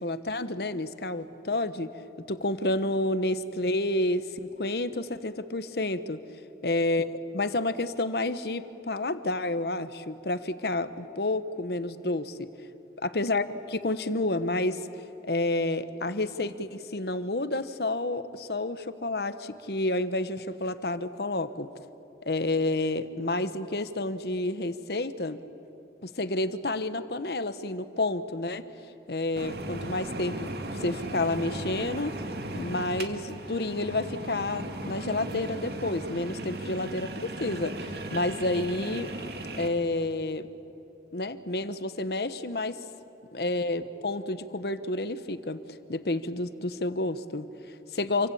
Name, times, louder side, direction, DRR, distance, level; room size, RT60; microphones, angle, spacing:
voice 1, 0.0-1.9 2.3-6.2 6.6-12.5 13.0-14.9 15.2-21.8 22.2-25.4 26.0-28.7 29.1-30.5 30.8-32.2 32.5-39.1 39.6-40.5 41.1-42.8 43.3-45.6 45.9-48.3, left 2 dB, 65° left, 12 dB, 1.1 m, -30 dB
sound 1, 29.4-39.7, right 1 dB, 65° right, 2.3 m, -37 dB
28.0 x 24.5 x 8.7 m, 2.9 s
head